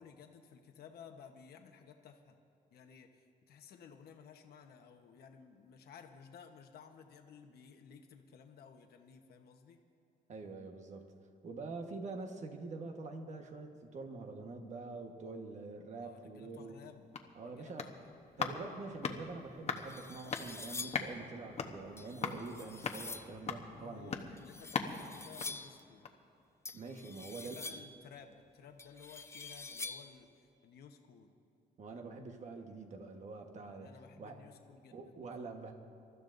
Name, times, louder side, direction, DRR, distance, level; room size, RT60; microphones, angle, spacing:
voice 1, 0.0-2.4 2.7-9.8 16.0-17.0 17.4-18.2 23.7-26.1 27.4-31.3 33.8-35.3, left 6 dB, 85° left, 5 dB, 1.1 m, -56 dB
voice 2, 10.3-11.1 11.4-16.8 17.3-17.9 18.4-24.1 26.7-27.8 31.8-33.9 34.2-34.4 34.9-35.7, right 3 dB, 50° right, 4 dB, 1.3 m, -45 dB
sound 1, 16.8-26.3 26.7-26.8, left 5 dB, 40° left, 1.0 m, -42 dB
sound 2, 19.2-19.3 19.8-21.1 22.0-23.4 24.4-25.8 26.6-28.0 28.8-30.2, left 3 dB, 15° left, 0.5 m, -46 dB
27.0 x 13.5 x 2.6 m, 2.7 s
cardioid pair, 150°, 16 cm